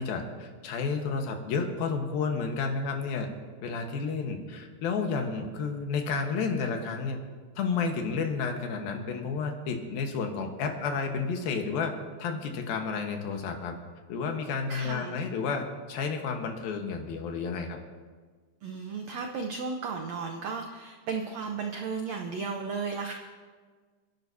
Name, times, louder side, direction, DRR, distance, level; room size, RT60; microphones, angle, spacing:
voice 1, 0.0-3.3 3.6-7.2 7.6-11.9 12.2-13.7 14.1-17.8, left 5 dB, 80° left, 4 dB, 3.1 m, -31 dB
voice 2, 14.7-15.1 18.6-23.1, right 5 dB, 90° right, 3 dB, 1.5 m, -34 dB
28.5 x 11.0 x 2.7 m, 1.5 s
omnidirectional pair, 4.2 m